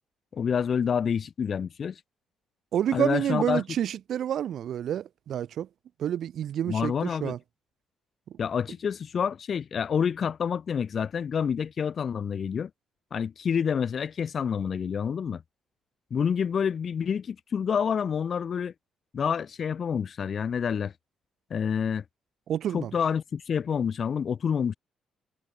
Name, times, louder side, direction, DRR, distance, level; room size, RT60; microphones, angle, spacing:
voice 1, 0.3-2.0 2.9-3.6 6.7-7.3 8.4-12.7 13.1-15.4 16.1-18.7 19.1-20.9 21.5-22.0 22.7-24.7, left 7 dB, 50° left, 5.2 m, -28 dB
voice 2, 2.7-5.7 6.0-7.4 22.5-22.9, right 10 dB, 70° right, 2.1 m, -28 dB
cardioid pair, 90°, 0 cm